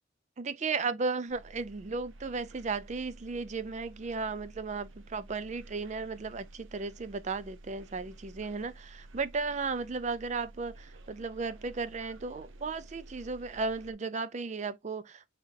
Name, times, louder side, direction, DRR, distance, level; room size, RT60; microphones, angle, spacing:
voice 1, 0.4-15.3, right 4 dB, 35° right, 0.4 m, -35 dB
sound 1, 1.3-13.9, right 2 dB, 70° right, 0.7 m, -52 dB
3.8 x 3.6 x 2.6 m
head